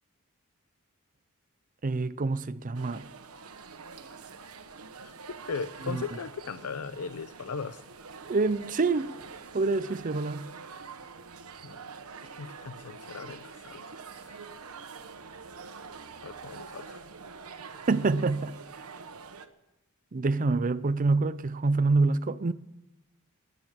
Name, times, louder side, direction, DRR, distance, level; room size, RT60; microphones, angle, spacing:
voice 1, 1.8-3.1 5.9-6.0 8.3-9.1 9.5-10.5 17.9-18.6 20.1-22.5, right 3 dB, 40° right, 0.5 m, -26 dB
sound 1, 2.7-19.5, right 5 dB, 80° right, 1.2 m, -46 dB
voice 2, 5.0-7.8 11.6-11.8 12.4-13.9 14.2-14.6 16.2-17.0, left 5 dB, 85° left, 0.6 m, -38 dB
19.0 x 9.8 x 7.4 m
head